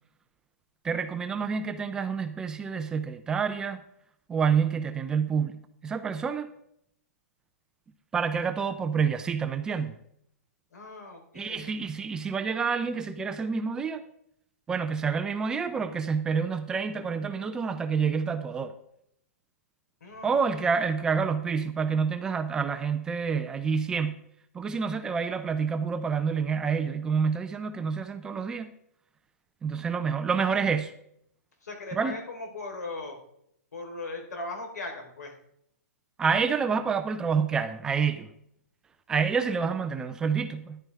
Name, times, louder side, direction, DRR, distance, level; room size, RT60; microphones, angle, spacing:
voice 1, 0.8-3.8 4.3-6.5 8.1-10.0 11.4-14.0 14.7-18.7 20.2-24.1 24.5-28.7 29.6-30.9 32.0-32.2 36.2-38.3 39.1-40.8, right 6 dB, 10° right, 8 dB, 0.4 m, -28 dB
voice 2, 10.7-11.9 20.0-20.8 31.6-33.2 33.7-35.4, left 2 dB, 85° left, 3 dB, 3.9 m, -39 dB
13.5 x 10.5 x 3.5 m, 0.73 s
hypercardioid pair, 165°, 9 cm